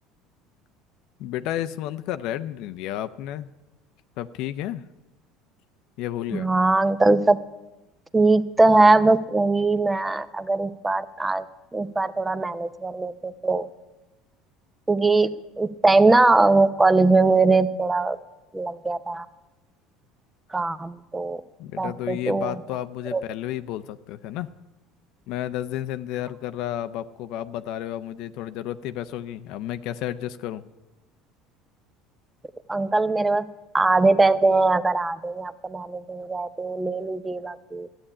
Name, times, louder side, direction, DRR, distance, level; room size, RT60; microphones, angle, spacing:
voice 1, 1.2-3.5 4.2-4.8 6.0-6.5 21.6-24.5 25.3-30.6, left 12 dB, 65° left, 11 dB, 0.6 m, -32 dB
voice 2, 6.3-7.4 8.1-11.4 11.7-13.7 14.9-15.3 15.6-18.2 18.5-19.2 20.5-21.4 21.8-22.5 23.1-23.3 32.7-33.5 33.7-37.9, right 3 dB, 15° right, 14 dB, 0.7 m, -21 dB
13.0 x 8.7 x 9.9 m, 1.1 s
supercardioid pair, 100°, 0 cm